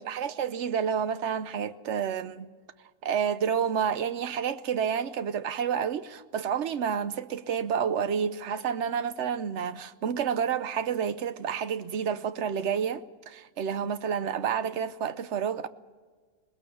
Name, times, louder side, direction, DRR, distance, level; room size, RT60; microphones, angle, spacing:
voice 1, 0.0-2.5 3.0-15.7, right 7 dB, 55° right, 0.9 m, -29 dB
22.5 x 20.0 x 7.0 m
omnidirectional pair, 1.7 m